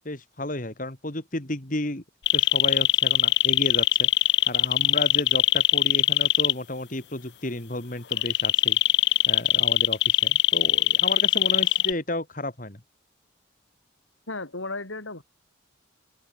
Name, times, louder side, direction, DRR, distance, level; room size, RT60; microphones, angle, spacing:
voice 1, 0.0-2.0 2.3-4.1 4.5-8.8 9.3-12.8, left 1 dB, 45° left, 2.4 m, -32 dB
sound 1, 2.3-6.5 8.1-11.9, left 14 dB, 60° left, 0.6 m, -21 dB
voice 2, 14.3-15.2, left 3 dB, 85° left, 4.6 m, -34 dB
head